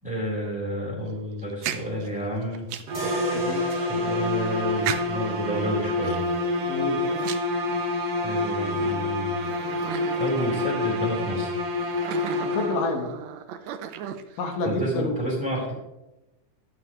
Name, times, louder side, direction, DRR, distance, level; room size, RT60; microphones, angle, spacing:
voice 1, 0.0-2.7 3.7-6.3 8.2-9.3 10.2-11.5 14.6-15.7, equal, ahead, -5 dB, 3.8 m, -30 dB
sound 1, 1.4-3.0 3.7-3.8 4.8-5.4 6.0-8.1 8.7-8.8 9.4-11.0 11.7-14.5, right 10 dB, 75° right, 1.7 m, -35 dB
sound 2, 2.9-7.0, right 2 dB, 20° right, 1.5 m, -36 dB
sound 3, 2.9-13.1, left 2 dB, 55° right, 2.3 m, -27 dB
voice 2, 3.3-3.6 6.7-7.0 12.5-13.1 14.4-15.2, left 3 dB, 85° left, 3 dB, 2.9 m, -28 dB
13.5 x 11.0 x 3.2 m, 0.97 s
omnidirectional pair, 3.7 m